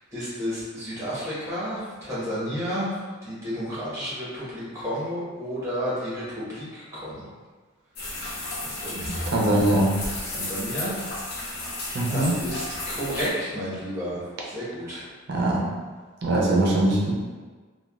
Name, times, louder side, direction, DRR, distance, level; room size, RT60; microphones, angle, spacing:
voice 1, 0.1-7.3 8.7-9.2 10.3-10.9 12.0-15.0, equal, 15° right, -10 dB, 1.0 m, -31 dB
sound 1, 7.9-13.3, left 2 dB, 45° left, 0.5 m, -33 dB
voice 2, 9.3-9.9 11.9-12.4 15.3-15.6 16.2-17.1, right 1 dB, 50° right, -3 dB, 0.5 m, -21 dB
3.3 x 2.2 x 2.3 m, 1.4 s
head